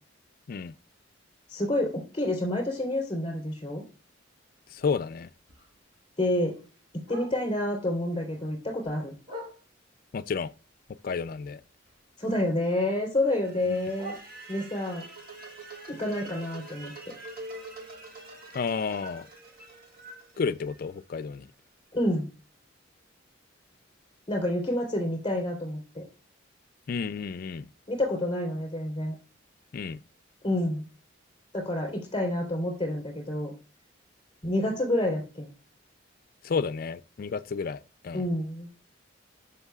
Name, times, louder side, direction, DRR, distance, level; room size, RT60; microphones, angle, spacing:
voice 1, 1.5-3.8 6.2-6.6 7.1-9.1 12.2-14.1 14.5-15.0 15.9-16.9 21.9-22.3 24.3-26.0 27.9-29.2 30.4-30.8 31.5-33.5 34.4-35.5 38.1-38.7, left 1 dB, 25° left, 3.6 m, -28 dB
Bark, 4.5-7.7 8.1-10.0 10.5-12.3 12.6-14.9 15.3-19.3 19.6-19.7 20.0-20.4 20.8-20.9 21.3-21.4 21.9-22.0, equal, 25° right, 4.4 m, -50 dB
voice 2, 4.7-5.3 10.1-10.5 11.0-11.6 13.7-13.8 18.5-19.3 20.4-21.5 26.9-27.7 29.7-30.0 36.4-38.3, left 5 dB, 45° left, 0.3 m, -31 dB
sound 1, 13.3-21.4, right 2 dB, 50° right, 1.7 m, -45 dB
13.5 x 5.5 x 2.4 m
head